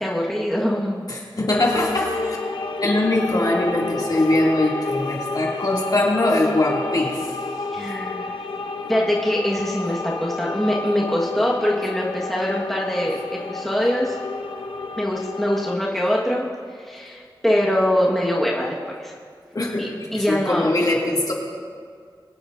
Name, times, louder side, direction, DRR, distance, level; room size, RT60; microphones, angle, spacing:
voice 1, 0.0-1.0 7.7-8.3 8.9-14.2 15.0-16.5 16.7-19.1 19.8-20.7, equal, 5° left, -4 dB, 1.5 m, -23 dB
voice 2, 1.1-2.4 2.8-7.3 19.5-21.3, left 1 dB, 50° left, -3 dB, 2.4 m, -22 dB
sound 1, 1.5-15.8, left 3 dB, 85° left, 0.8 m, -30 dB
22.0 x 9.3 x 2.6 m, 2.1 s
wide cardioid pair, 70°, 8 cm